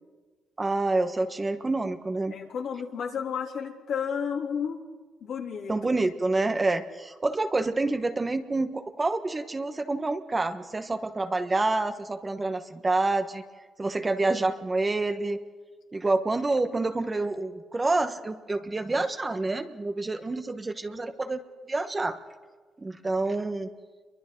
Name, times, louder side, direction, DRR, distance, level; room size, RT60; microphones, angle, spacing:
voice 1, 0.6-2.3 5.7-13.4 13.8-15.4 15.9-22.2 22.8-23.7, right 2 dB, 25° right, 8 dB, 1.3 m, -28 dB
voice 2, 2.3-4.8 5.2-5.7, left 7 dB, 70° left, 1 dB, 3.2 m, -32 dB
29.0 x 23.5 x 3.9 m, 1.4 s
cardioid pair, 90°, 0 cm